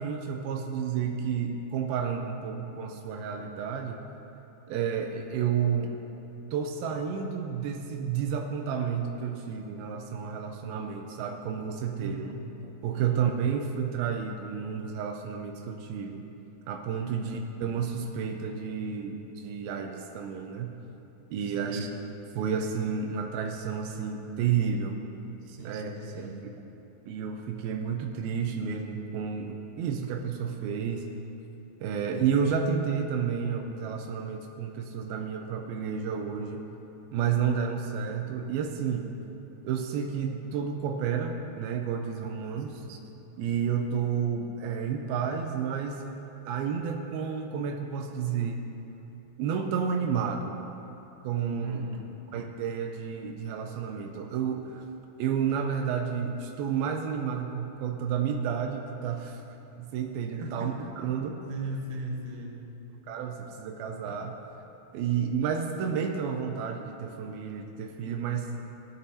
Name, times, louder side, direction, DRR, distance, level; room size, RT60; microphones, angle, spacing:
voice 1, 0.0-4.0 4.7-5.9 6.5-12.4 12.8-16.2 16.7-20.7 21.3-21.9 22.4-25.0 25.6-26.5 27.1-31.1 31.8-36.7 37.1-39.1 39.6-43.0 43.4-46.0 46.5-48.6 49.4-50.6 51.2-51.8 52.3-54.9 55.2-59.4 59.8-61.4 63.1-64.4 64.9-68.5, right 7 dB, 90° right, 3 dB, 2.5 m, -31 dB
voice 2, 12.0-12.5 12.9-13.4 17.0-17.4 21.4-21.9 25.4-26.5 42.7-43.0 51.6-52.1 60.4-60.7 61.5-62.7, right 2 dB, 70° right, 1 dB, 2.5 m, -38 dB
16.0 x 10.5 x 2.7 m, 2.9 s
omnidirectional pair, 4.2 m